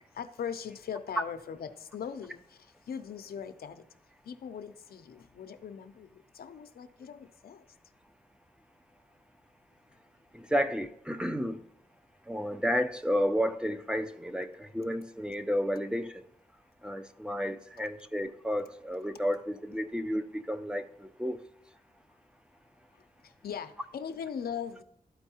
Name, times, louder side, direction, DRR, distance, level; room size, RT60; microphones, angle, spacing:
voice 1, 0.1-3.8 4.3-6.1 6.3-7.6 23.4-24.8, left 7 dB, 80° left, 0.6 m, -40 dB
voice 2, 10.3-11.6 12.3-16.2 16.8-21.4, equal, 5° right, 0.5 m, -31 dB
12.5 x 4.5 x 2.8 m
cardioid pair, 80°, 16 cm